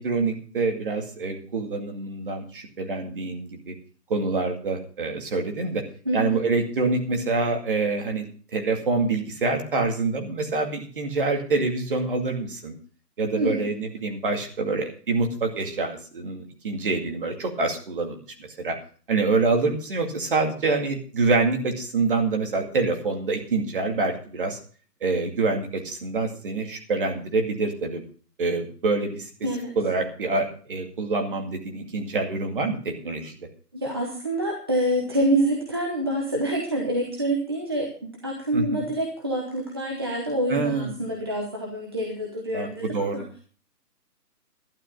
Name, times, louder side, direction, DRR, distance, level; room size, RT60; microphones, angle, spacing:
voice 1, 0.0-3.7 4.1-5.8 6.1-8.2 8.5-12.8 13.2-18.2 18.6-18.8 19.1-24.6 25.0-28.0 28.4-29.3 29.8-33.4 38.5-38.9 40.5-41.1 42.5-43.2, right 3 dB, 35° right, 4 dB, 2.2 m, -26 dB
voice 2, 6.0-6.4 13.3-13.7 29.4-29.8 33.7-43.2, right 1 dB, 15° right, -1 dB, 0.9 m, -27 dB
12.0 x 11.5 x 5.3 m, 0.41 s
hypercardioid pair, 170°, 49 cm